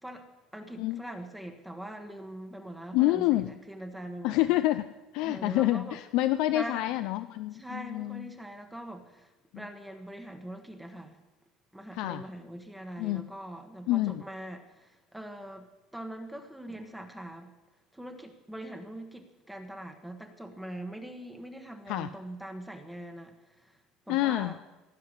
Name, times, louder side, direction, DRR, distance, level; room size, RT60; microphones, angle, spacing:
voice 1, 0.0-4.5 5.2-6.0 6.5-6.8 7.5-11.2 11.7-17.5 17.9-24.6, right 1 dB, 5° right, 5 dB, 1.2 m, -43 dB
voice 2, 2.9-3.5 4.2-4.9 5.1-8.3 9.5-9.6 11.9-12.2 13.0-13.2 13.9-14.2 21.9-22.1 24.1-24.6, left 16 dB, 70° left, 10 dB, 0.5 m, -27 dB
16.5 x 5.6 x 9.8 m, 1.1 s
cardioid pair, 135°, 0 cm